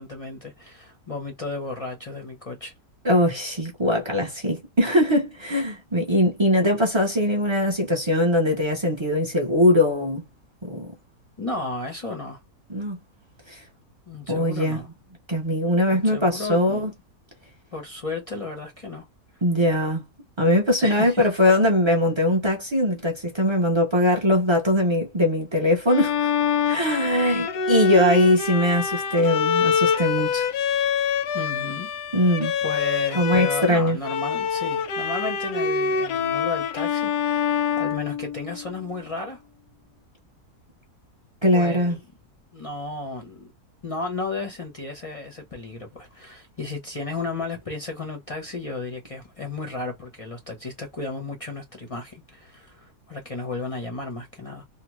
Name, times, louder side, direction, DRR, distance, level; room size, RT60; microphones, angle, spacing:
voice 1, 0.0-2.7 11.4-12.4 14.1-14.9 15.9-16.9 17.7-19.1 20.8-21.3 31.3-31.9 32.6-39.4 41.5-42.1 42.5-43.5 43.8-54.6, left 3 dB, 45° left, 0.4 m, -34 dB
voice 2, 3.0-10.3 10.6-10.9 12.7-13.0 13.5-13.6 14.3-14.8 15.3-16.9 19.4-20.0 20.4-26.3 26.7-30.5 32.1-32.5 33.1-34.0 41.4-42.0, left 1 dB, 40° right, 0.4 m, -21 dB
Bowed string instrument, 25.9-33.7 34.0-38.8, left 6 dB, 90° left, 1.2 m, -25 dB
2.8 x 2.1 x 2.9 m
omnidirectional pair, 1.6 m